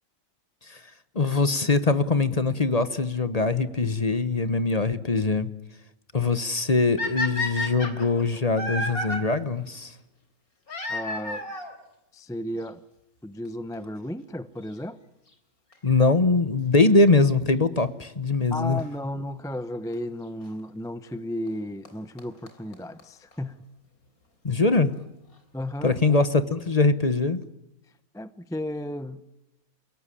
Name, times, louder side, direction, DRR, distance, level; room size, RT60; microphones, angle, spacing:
voice 1, 1.1-5.5 6.1-9.9 15.8-18.8 24.4-24.9 25.8-27.4, left 3 dB, 30° left, 1.0 m, -22 dB
sound 1, 7.0-9.2 10.7-11.7 12.7-12.8 13.5-13.6 13.7-13.8 15.7-16.0 18.8-18.9 19.9-20.0 21.5-21.6 21.9-22.0 22.2-22.3 22.5-22.6 22.7-22.8 23.0-23.1 23.3-23.4, left 2 dB, 75° left, 4.1 m, -30 dB
voice 2, 10.9-11.5 12.1-12.8 13.2-15.0 18.5-23.6 25.5-26.0 28.1-29.2, left 1 dB, 5° left, 0.5 m, -34 dB
29.5 x 17.5 x 10.0 m
omnidirectional pair, 1.6 m